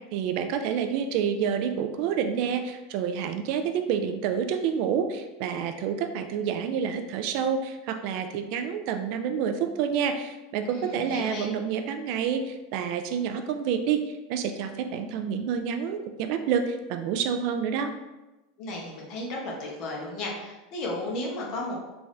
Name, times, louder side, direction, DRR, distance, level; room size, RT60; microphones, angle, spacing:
voice 1, 0.1-17.9, right 7 dB, 55° right, 7 dB, 0.3 m, -28 dB
voice 2, 10.7-11.5 18.6-21.8, left 2 dB, 45° left, -2 dB, 1.0 m, -34 dB
3.5 x 2.6 x 3.2 m, 1.1 s
supercardioid pair, 135°, 0 cm